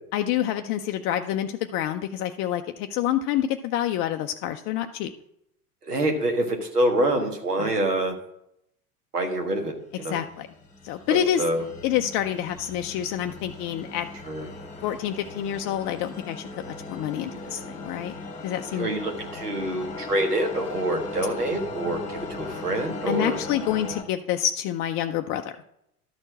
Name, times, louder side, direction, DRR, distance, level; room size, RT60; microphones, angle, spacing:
voice 1, 0.1-5.1 7.6-7.7 10.1-10.5 10.8-11.5 11.8-14.1 14.8-16.5 16.9-18.1 18.4-18.9 23.1-25.4, left 11 dB, 30° left, 6 dB, 0.4 m, -27 dB
voice 2, 5.8-8.2 9.1-10.2 11.1-11.6 14.3-14.5 18.8-23.4, right 1 dB, 85° right, 4 dB, 1.6 m, -26 dB
sound 1, 9.9-24.0, left 3 dB, 15° left, 1.7 m, -38 dB
12.0 x 4.4 x 5.9 m, 0.76 s
figure-of-eight pair, 80°, 46 cm